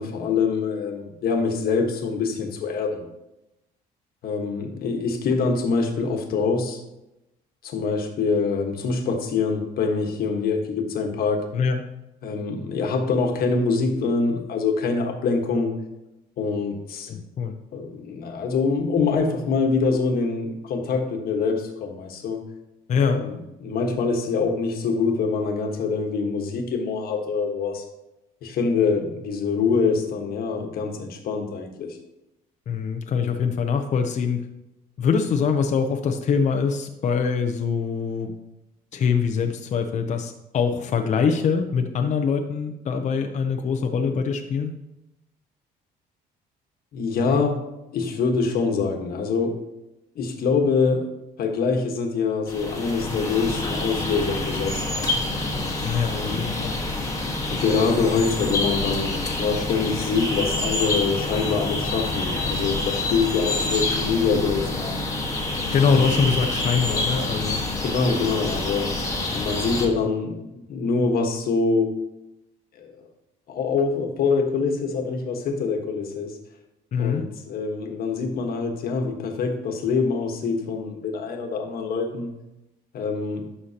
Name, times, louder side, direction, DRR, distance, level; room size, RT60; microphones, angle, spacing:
voice 1, 0.0-3.1 4.2-6.8 7.6-11.4 12.2-15.8 16.4-17.2 17.7-22.4 23.1-23.3 23.6-27.8 28.4-32.0 46.9-47.6 47.9-49.6 50.1-51.1 51.4-55.2 56.1-56.4 57.5-65.0 65.8-66.2 67.8-72.0 72.8-72.9 73.5-76.4 77.0-82.3 82.9-83.4, left 4 dB, 60° left, 4 dB, 1.4 m, -25 dB
voice 2, 17.1-17.6 22.9-23.2 32.7-34.4 35.0-38.3 38.9-44.7 55.8-56.8 65.7-67.6 76.9-77.3, left 6 dB, 45° left, 5 dB, 0.7 m, -23 dB
sound 1, 52.5-69.9, left 2 dB, 20° left, 1.5 m, -27 dB
11.5 x 5.7 x 2.9 m, 0.92 s
cardioid pair, 110°, 17 cm